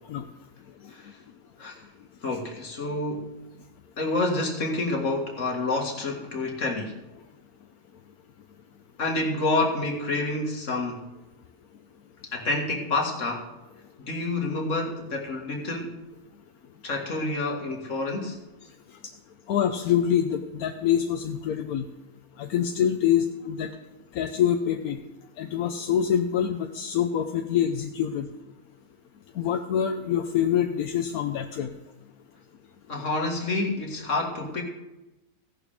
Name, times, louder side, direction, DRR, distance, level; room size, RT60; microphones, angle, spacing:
voice 1, 2.2-3.3 4.0-6.9 9.0-11.1 12.3-13.5 14.0-16.0 16.8-18.4 32.9-34.6, left 2 dB, 60° left, 0 dB, 2.2 m, -28 dB
voice 2, 19.5-21.9 22.4-23.7 24.1-25.0 25.4-28.3 29.4-31.7, left 9 dB, 85° left, 5 dB, 1.2 m, -25 dB
16.0 x 11.0 x 3.5 m, 1.0 s
omnidirectional pair, 1.5 m